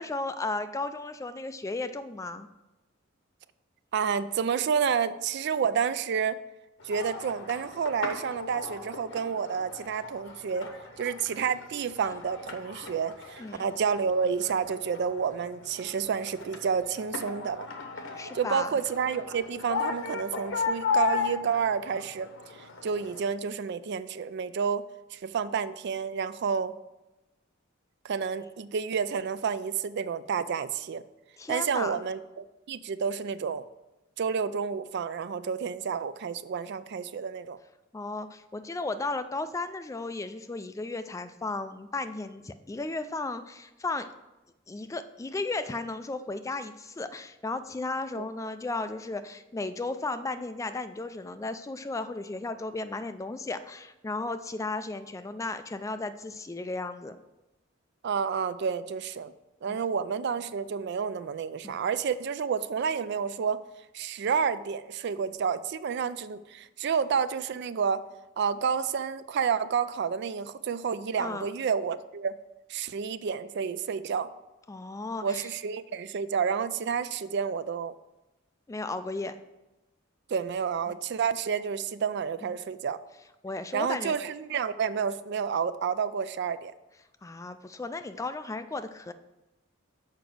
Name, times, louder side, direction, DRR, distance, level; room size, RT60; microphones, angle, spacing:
voice 1, 0.0-2.5 13.4-13.6 18.2-18.7 31.4-32.0 37.9-44.1 44.7-57.2 59.7-59.8 61.6-61.8 71.2-71.5 74.7-75.5 78.7-79.3 83.4-84.2 87.2-89.1, left 3 dB, 15° left, 11 dB, 0.3 m, -35 dB
voice 2, 3.9-6.4 6.8-10.7 11.0-17.7 18.3-22.3 22.8-24.8 25.1-26.7 28.0-31.0 31.5-33.6 34.2-37.6 48.1-48.2 58.0-59.3 59.6-63.6 63.9-68.0 68.4-72.4 72.7-74.3 75.2-77.9 80.3-83.0 83.7-86.7, right 6 dB, 55° right, 14 dB, 0.4 m, -30 dB
sound 1, 6.8-23.3, left 5 dB, 70° left, 1.0 m, -36 dB
6.7 x 5.1 x 6.0 m, 1.0 s
head